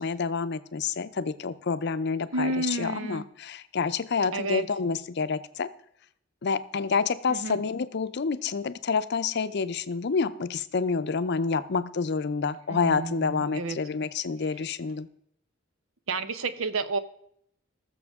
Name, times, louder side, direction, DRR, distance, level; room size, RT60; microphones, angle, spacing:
voice 1, 0.0-5.7 6.4-15.1, left 5 dB, 55° left, 12 dB, 0.6 m, -28 dB
voice 2, 2.3-3.2 4.3-4.6 7.3-7.6 12.7-13.8 16.1-17.0, right 2 dB, 90° right, 12 dB, 0.8 m, -30 dB
19.5 x 6.9 x 3.6 m, 0.71 s
head